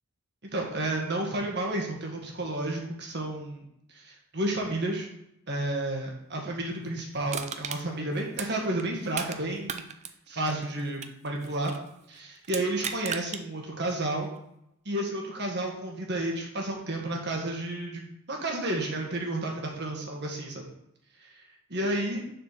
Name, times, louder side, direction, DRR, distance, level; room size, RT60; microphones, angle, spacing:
voice 1, 0.5-5.1 5.5-9.8 10.3-11.7 12.1-14.3 14.8-20.6 21.2-21.4 21.7-22.2, right 1 dB, 50° right, 0 dB, 1.6 m, -31 dB
Crushing, 7.3-9.4 9.7-11.9 12.4-13.4 13.9-14.0, right 7 dB, 30° right, 0.4 m, -36 dB
7.0 x 4.4 x 5.8 m, 0.79 s
head